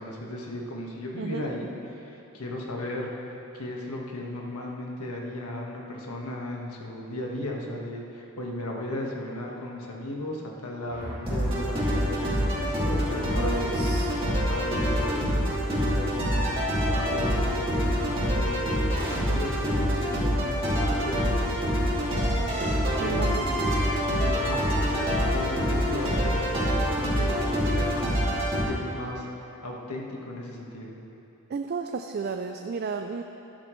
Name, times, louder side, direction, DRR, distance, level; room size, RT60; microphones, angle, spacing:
voice 1, 0.0-3.1 3.5-13.9 14.3-18.7 19.2-21.5 22.3-22.5 23.0-23.7 24.2-24.6 25.1-29.3 29.6-31.0, left 1 dB, 85° left, -1 dB, 1.5 m, -36 dB
sound 1, 10.9-28.6, equal, 25° right, 2.3 m, -26 dB
voice 2, 13.4-14.1 23.0-23.8 31.5-33.2, right 5 dB, 45° right, 5 dB, 0.4 m, -33 dB
12.5 x 12.0 x 3.2 m, 3.0 s
head